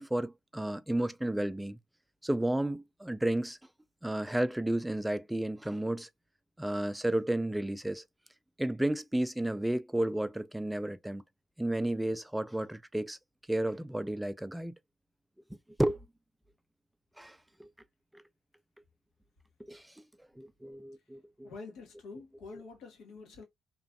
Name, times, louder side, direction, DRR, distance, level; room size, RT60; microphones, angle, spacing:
voice 1, 0.0-1.8 2.2-3.6 4.0-6.1 6.6-8.0 8.6-11.2 11.6-13.2 13.5-14.8 15.8-16.1 17.2-17.7 18.1-18.2 19.6-19.9 20.4-21.5 22.5-22.6, right 1 dB, 5° right, 0.3 m, -32 dB
voice 2, 21.4-23.4, left 4 dB, 75° left, 1.3 m, -47 dB
3.0 x 2.5 x 2.3 m
cardioid pair, 90°, 0 cm